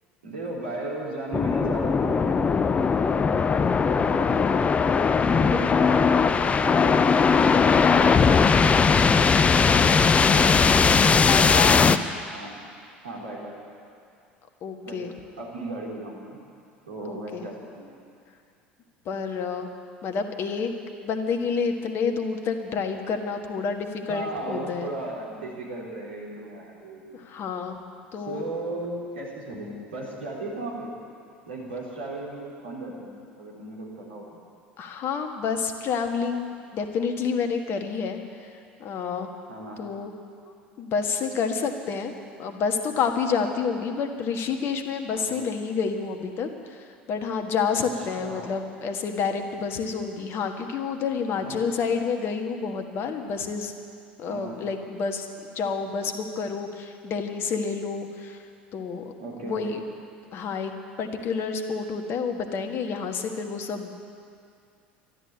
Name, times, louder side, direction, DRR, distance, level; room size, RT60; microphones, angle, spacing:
voice 1, 0.2-2.5 3.9-4.5 5.2-6.9 7.3-8.5 8.8-9.1 12.3-12.6 13.0-13.6 14.8-15.0 15.4-16.4 16.9-18.0 24.1-27.3 28.2-30.9 31.5-34.3 39.5-39.8 45.1-45.4 47.7-47.8 48.2-48.5 51.3-51.6 54.2-54.6 59.2-59.8, right 2 dB, 75° right, -4 dB, 3.6 m, -36 dB
sound 1, 1.3-12.0, left 5 dB, 25° left, 0.5 m, -19 dB
voice 2, 10.2-11.9 14.6-15.1 17.0-17.5 19.0-19.7 20.0-20.7 21.0-24.9 27.1-27.8 28.1-28.4 34.8-38.2 38.8-39.3 39.8-40.1 40.8-42.1 42.4-53.7 54.2-58.4 58.7-59.0 59.4-59.8 60.3-63.9, left 5 dB, 45° left, 5 dB, 1.5 m, -29 dB
12.5 x 11.5 x 8.9 m, 2.4 s
figure-of-eight pair, 70°, 6 cm